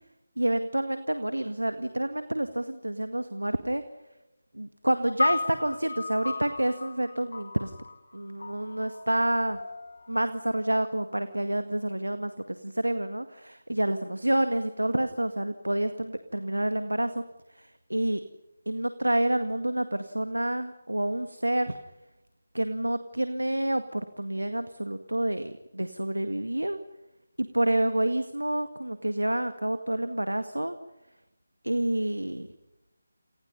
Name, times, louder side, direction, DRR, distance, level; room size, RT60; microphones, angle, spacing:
voice 1, 0.4-3.8 4.5-7.7 8.1-9.6 10.1-17.2 17.5-18.2 18.7-21.8 22.5-26.8 27.4-30.8 31.6-32.5, right 1 dB, 85° right, 9 dB, 1.9 m, -28 dB
sound 1, 5.2-11.6, left 3 dB, 55° left, 2.7 m, -36 dB
29.5 x 28.0 x 5.6 m, 0.93 s
figure-of-eight pair, 155°, 0 cm